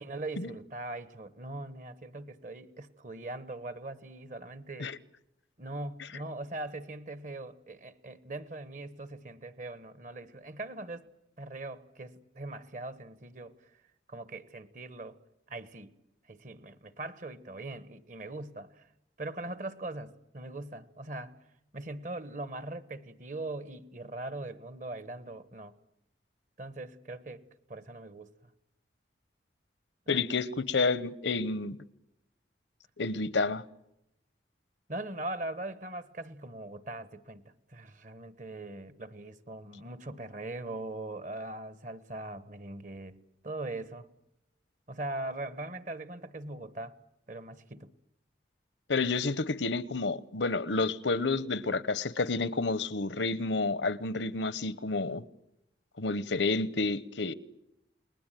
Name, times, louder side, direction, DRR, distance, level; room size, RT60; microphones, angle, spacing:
voice 1, 0.0-4.9 5.6-11.1 11.4-13.7 14.1-15.2 15.5-15.9 16.3-18.9 19.2-21.4 21.7-25.7 26.6-27.4 27.7-28.3 30.1-30.2 34.9-37.4 37.7-43.2 43.4-44.1 44.9-47.0 47.3-47.9, right 2 dB, 45° right, 1.3 m, -41 dB
voice 2, 30.1-31.8 33.0-33.6 48.9-55.2 56.0-57.3, left 3 dB, 85° left, 1.0 m, -30 dB
30.0 x 20.5 x 9.2 m
head